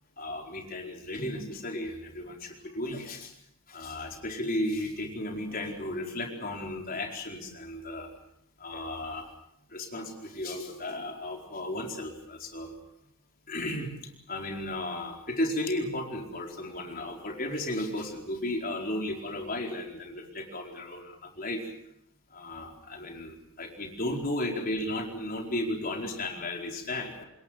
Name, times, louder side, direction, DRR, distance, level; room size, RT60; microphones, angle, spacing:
voice 1, 0.2-3.3 3.7-8.1 8.6-9.3 9.7-12.8 13.5-14.0 14.3-21.6 22.3-27.2, left 1 dB, 40° left, 2 dB, 4.7 m, -34 dB
27.5 x 21.5 x 6.6 m, 0.75 s
head